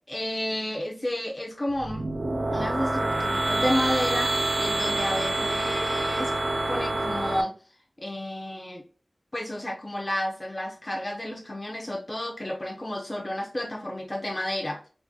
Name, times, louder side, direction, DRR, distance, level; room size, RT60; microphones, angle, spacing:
voice 1, 0.1-2.1 2.5-6.3 6.7-7.5 8.0-8.8 9.3-14.9, left 1 dB, 25° left, 0 dB, 0.5 m, -31 dB
sound 1, 1.7-7.4, right 2 dB, 50° right, 0.3 m, -27 dB
3.5 x 2.2 x 2.6 m, 0.41 s
wide cardioid pair, 75°, 0 cm